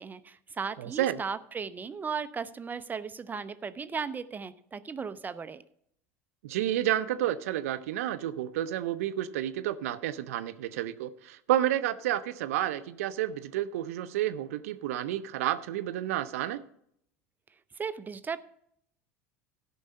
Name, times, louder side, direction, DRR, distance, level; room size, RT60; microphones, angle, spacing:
voice 1, 0.0-5.6 17.8-18.4, right 5 dB, 20° right, 0.5 m, -36 dB
voice 2, 0.8-1.2 6.4-16.6, right 12 dB, 70° right, 0.5 m, -30 dB
13.0 x 5.4 x 5.3 m
hypercardioid pair, 80°, 8 cm